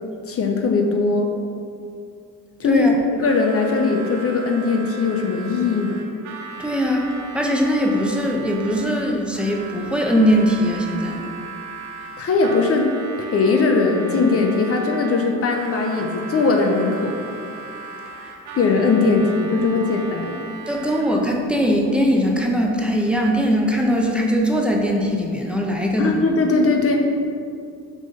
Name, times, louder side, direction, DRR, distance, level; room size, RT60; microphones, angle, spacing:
voice 1, 0.3-1.3 2.6-6.0 12.2-12.9 13.3-17.1 18.6-20.4 26.0-27.1, left 3 dB, 50° left, 2 dB, 0.7 m, -19 dB
voice 2, 2.7-3.0 6.6-11.2 19.6-19.7 20.7-26.3, equal, 5° right, -1 dB, 0.9 m, -20 dB
Harmonica, 3.1-21.4, right 4 dB, 75° right, 0.9 m, -37 dB
6.2 x 3.7 x 5.4 m, 2.4 s
cardioid pair, 90°, 30 cm